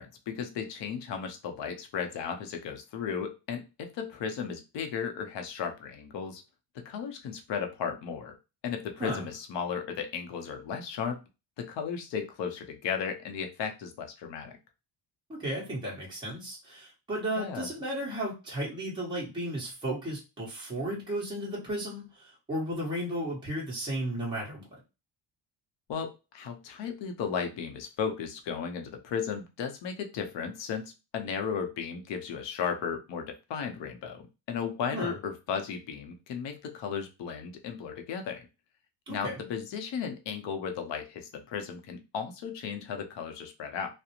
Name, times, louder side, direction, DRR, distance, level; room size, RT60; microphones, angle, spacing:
voice 1, 0.0-6.4 6.7-8.3 8.6-11.2 11.6-14.5 17.4-17.7 25.9-38.5 39.1-44.0, left 6 dB, 70° left, 5 dB, 0.7 m, -35 dB
voice 2, 15.3-24.7 34.9-35.1 39.1-39.4, right 1 dB, 10° right, -5 dB, 1.0 m, -34 dB
2.4 x 2.0 x 2.8 m, 0.28 s
cardioid pair, 145°, 46 cm